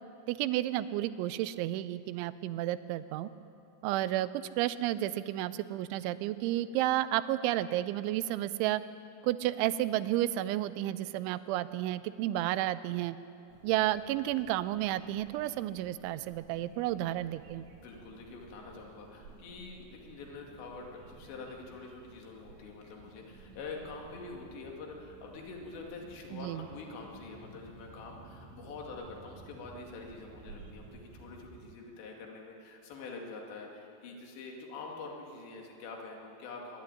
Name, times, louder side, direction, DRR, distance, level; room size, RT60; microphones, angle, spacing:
voice 1, 0.3-3.3 3.8-8.8 9.2-13.2 13.6-17.6 26.3-26.7, right 14 dB, 85° right, 14 dB, 3.0 m, -31 dB
sound 1, 13.5-31.7, right 3 dB, 65° right, 3.6 m, -54 dB
voice 2, 17.8-36.8, left 3 dB, 70° left, 0 dB, 4.4 m, -45 dB
24.5 x 11.5 x 9.9 m, 2.7 s
omnidirectional pair, 5.5 m